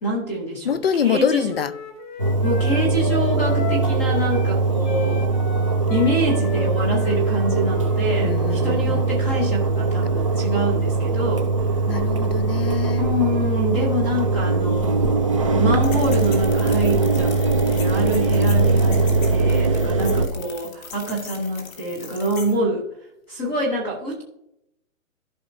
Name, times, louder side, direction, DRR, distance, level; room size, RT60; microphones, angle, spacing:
voice 1, 0.0-1.5 2.4-5.3 5.9-11.5 13.0-15.0 15.6-17.4 17.7-22.9 23.3-24.2, equal, 10° left, 0.7 m, -26 dB
voice 2, 0.6-1.7 8.2-9.1 11.9-13.1, left 7 dB, 45° left, 0.5 m, -25 dB
Wind instrument woodwind instrument, 1.1-4.6 4.8-8.7, left 4 dB, 25° left, 1.5 m, -35 dB
Engine, 2.2-20.3, right 3 dB, 25° right, 0.5 m, -21 dB
sound 1, 15.8-22.5, left 5 dB, 70° left, 3.1 m, -39 dB
14.5 x 5.6 x 2.6 m
hypercardioid pair, 170°, 42 cm